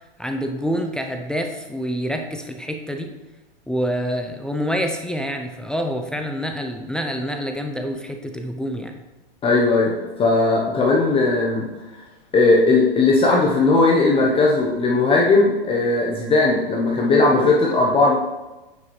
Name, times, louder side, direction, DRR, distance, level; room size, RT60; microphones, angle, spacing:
voice 1, 0.2-3.1 3.7-9.0, equal, 5° left, 4 dB, 0.4 m, -27 dB
voice 2, 9.4-11.7 12.3-18.2, left 3 dB, 20° left, -2 dB, 0.9 m, -17 dB
9.4 x 4.8 x 3.1 m, 1.1 s
hypercardioid pair, 115°, 29 cm